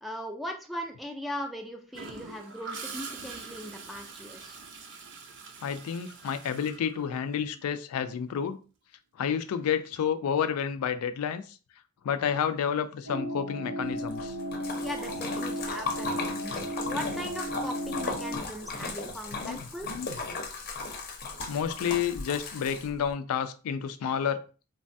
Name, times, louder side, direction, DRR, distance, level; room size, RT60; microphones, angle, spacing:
voice 1, 0.0-4.6 14.8-19.9, equal, ahead, 3 dB, 0.3 m, -39 dB
Gurgling / Toilet flush, 1.9-7.7 9.7-9.9, right 4 dB, 55° right, 0.5 m, -44 dB
voice 2, 5.6-8.6 9.2-11.6 12.0-14.4 19.4-20.1 21.5-24.4, left 8 dB, 85° left, 11 dB, 0.3 m, -30 dB
sound 1, 13.0-18.4, equal, 85° right, 1.0 m, -35 dB
Splash splatter, 14.0-23.1, left 3 dB, 45° left, 0.6 m, -36 dB
3.1 x 2.2 x 2.6 m, 0.35 s
head